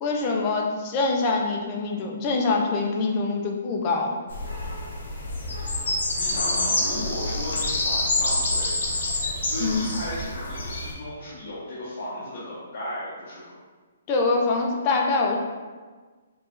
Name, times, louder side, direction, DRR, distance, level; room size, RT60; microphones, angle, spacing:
voice 1, 0.0-4.1 9.6-9.9 14.1-15.4, left 3 dB, 25° left, 1 dB, 0.4 m, -24 dB
sound 1, 4.3-10.9, left 2 dB, 70° left, 0.8 m, -27 dB
voice 2, 6.2-8.8 9.4-13.4, left 1 dB, 40° left, -9 dB, 1.0 m, -35 dB
4.6 x 2.4 x 3.1 m, 1.4 s
hypercardioid pair, 170°, 0 cm